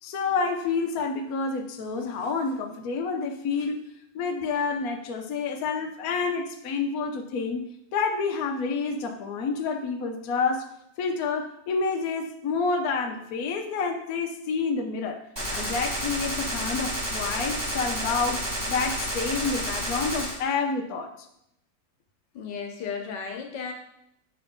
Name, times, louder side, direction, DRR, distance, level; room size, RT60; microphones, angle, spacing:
voice 1, 0.0-3.8 4.1-7.6 7.9-10.7 11.0-15.2 15.5-18.4 18.7-21.1, left 4 dB, 60° left, 2 dB, 1.1 m, -28 dB
Gunshot gunfire, 15.4-20.4, equal, 15° right, 1.2 m, -30 dB
voice 2, 22.3-23.7, left 6 dB, 80° left, 3 dB, 1.6 m, -34 dB
6.9 x 3.4 x 5.2 m, 0.77 s
omnidirectional pair, 1.9 m